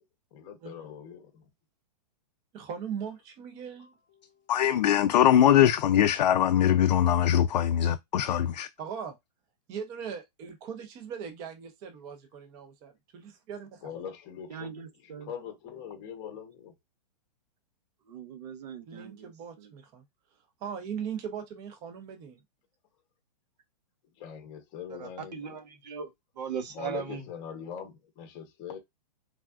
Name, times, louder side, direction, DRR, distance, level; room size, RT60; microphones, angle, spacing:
voice 1, 0.3-1.5 3.8-3.9 4.2-4.3 13.8-14.7 15.2-16.7 24.2-25.4 26.7-28.8, left 8 dB, 20° left, 0.8 m, -42 dB
voice 2, 2.5-3.9 8.8-9.2 9.7-14.0 18.9-20.0 20.6-22.4, right 7 dB, 15° right, 0.4 m, -39 dB
voice 3, 4.5-8.7, left 10 dB, 85° left, 0.4 m, -22 dB
voice 4, 14.5-15.3 18.1-19.3 19.6-19.7, right 7 dB, 70° right, 0.7 m, -43 dB
voice 5, 24.9-26.1 26.4-27.3, right 7 dB, 90° right, 1.0 m, -37 dB
3.4 x 2.3 x 2.3 m
hypercardioid pair, 165°, 21 cm